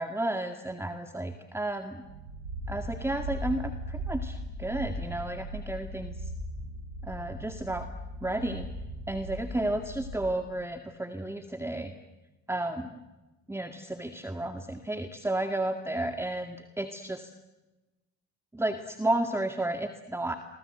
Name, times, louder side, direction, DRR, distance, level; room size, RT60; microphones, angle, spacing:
voice 1, 0.0-2.0 2.7-6.3 7.0-7.9 8.2-8.7 9.1-11.9 12.5-13.0 13.5-17.3 18.5-20.3, right 1 dB, 5° right, 6 dB, 2.0 m, -32 dB
sound 1, 2.1-10.5, equal, 80° right, 5.9 m, -38 dB
28.5 x 24.5 x 8.0 m, 1.1 s
hypercardioid pair, 65°, 36 cm